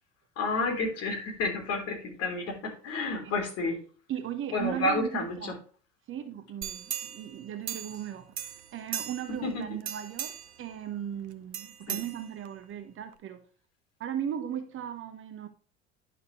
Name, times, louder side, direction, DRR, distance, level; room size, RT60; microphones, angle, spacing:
voice 1, 0.4-3.8 4.5-5.5 9.4-9.7 11.9-12.0, left 2 dB, 45° left, 3.5 m, -30 dB
voice 2, 4.1-5.6 6.1-8.3 8.7-13.4 14.0-15.5, right 10 dB, 35° right, 1.1 m, -37 dB
sound 1, 6.6-8.1 8.4-9.4 9.8-10.6 11.5-12.6 13.1-13.2, right 9 dB, 75° right, 0.8 m, -38 dB
10.5 x 6.6 x 3.1 m
figure-of-eight pair, 65°, 34 cm